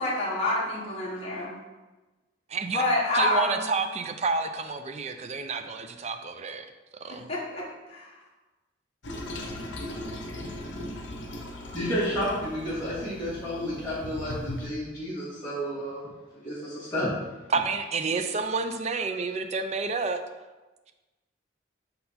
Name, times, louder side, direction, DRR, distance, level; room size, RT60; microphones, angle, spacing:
voice 1, 0.0-1.5 2.7-3.6 7.1-8.1, left 2 dB, 30° left, -6 dB, 1.3 m, -28 dB
voice 2, 2.5-2.8 3.1-6.7 7.0-7.3 17.5-20.2, right 4 dB, 35° right, 7 dB, 0.4 m, -29 dB
Toilet flush, 9.0-14.7, left 1 dB, 70° left, 0.8 m, -38 dB
voice 3, 11.7-16.0 16.4-17.1, equal, 15° left, -13 dB, 1.8 m, -31 dB
5.4 x 4.3 x 4.1 m, 1.2 s
head